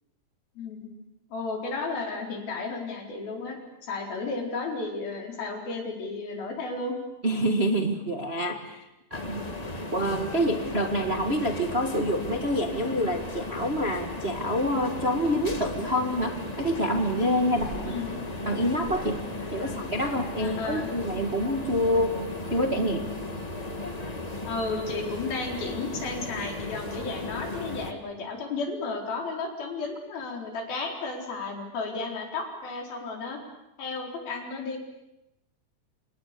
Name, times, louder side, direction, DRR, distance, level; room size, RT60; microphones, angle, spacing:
voice 1, 0.6-0.9 1.3-7.0 17.8-18.2 19.4-19.8 20.4-20.9 24.4-33.4 33.8-34.8, left 3 dB, 80° left, 1 dB, 6.2 m, -33 dB
voice 2, 7.2-9.4 9.9-18.0 18.4-19.2 19.5-23.1, equal, 30° right, 3 dB, 1.1 m, -27 dB
sound 1, 9.1-27.9, left 2 dB, 45° left, 0.5 m, -36 dB
29.5 x 27.0 x 6.9 m, 0.91 s
omnidirectional pair, 4.2 m